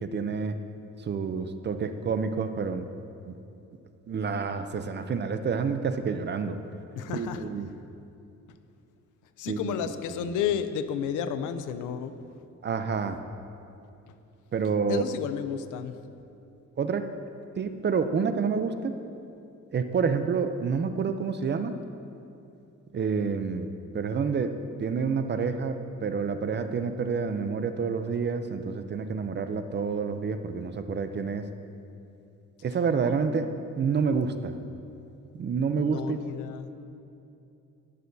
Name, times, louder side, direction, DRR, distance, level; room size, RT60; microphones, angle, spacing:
voice 1, 0.0-0.6 1.0-2.8 3.3-3.4 4.1-6.6 7.1-7.7 9.5-9.9 10.2-10.3 12.6-13.2 14.5-15.0 16.8-17.2 17.6-18.9 19.7-21.8 22.9-23.7 23.9-24.5 24.8-31.5 32.6-34.6 35.3-36.2, right 5 dB, 35° right, 9 dB, 0.5 m, -28 dB
voice 2, 7.0-7.4 9.4-12.1 14.9-16.0 35.7-36.7, left 8 dB, 85° left, 11 dB, 0.6 m, -31 dB
18.5 x 6.4 x 2.7 m, 2.7 s
cardioid pair, 90°, 30 cm